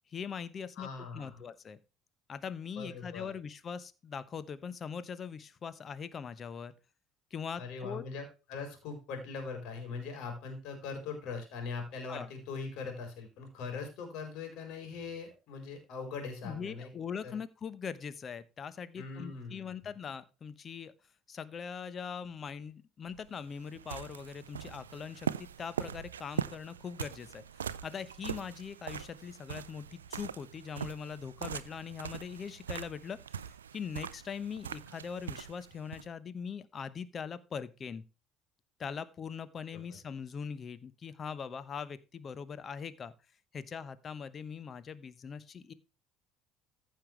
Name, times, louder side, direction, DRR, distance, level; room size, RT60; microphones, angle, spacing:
voice 1, 0.1-1.8 2.3-6.7 7.3-8.0 12.1-12.3 16.4-20.9 21.3-38.0 38.8-43.1 43.5-45.7, left 6 dB, 40° left, 15 dB, 1.0 m, -41 dB
voice 2, 0.8-1.4 2.8-3.3 7.6-16.9 17.2-17.4 19.0-19.9 39.7-40.0, left 4 dB, 65° left, 5 dB, 4.1 m, -41 dB
sound 1, 23.1-36.1, right 8 dB, 90° right, 0.4 m, -41 dB
15.0 x 5.7 x 3.3 m, 0.30 s
hypercardioid pair, 60°, 0 cm